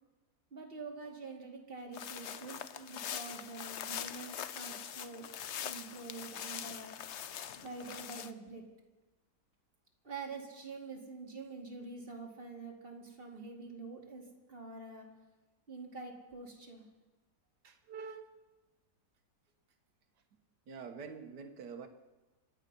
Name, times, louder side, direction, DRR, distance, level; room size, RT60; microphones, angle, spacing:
voice 1, 0.5-5.3 5.6-7.0 7.6-8.6 10.0-14.2 14.5-15.1 15.7-16.8, right 3 dB, 35° right, -1 dB, 2.7 m, -46 dB
sound 1, 1.9-8.3, left 9 dB, 60° left, 0.7 m, -43 dB
voice 2, 17.6-18.3 20.7-21.9, right 5 dB, 80° right, 6 dB, 1.9 m, -46 dB
25.5 x 9.9 x 5.5 m, 1.1 s
omnidirectional pair, 1.8 m